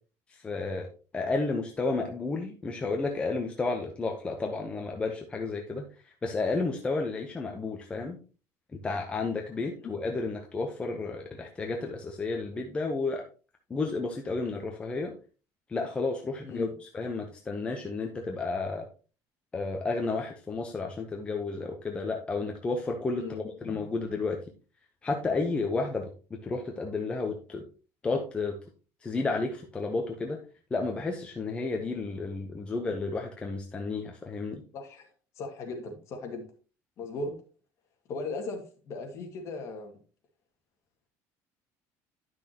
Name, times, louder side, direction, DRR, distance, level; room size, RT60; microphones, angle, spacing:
voice 1, 0.3-0.9 1.1-5.8 6.2-8.2 8.8-13.2 13.7-15.1 15.7-16.7 16.9-18.9 19.5-24.4 25.0-27.6 28.0-28.6 29.0-30.4 30.7-34.6, left 3 dB, 15° left, 0.9 m, -32 dB
voice 2, 23.2-23.8 34.7-35.1 35.4-36.5 37.0-37.4 38.1-39.9, left 3 dB, 45° left, 2.0 m, -38 dB
10.5 x 6.2 x 2.9 m
cardioid pair, 155°, 7 cm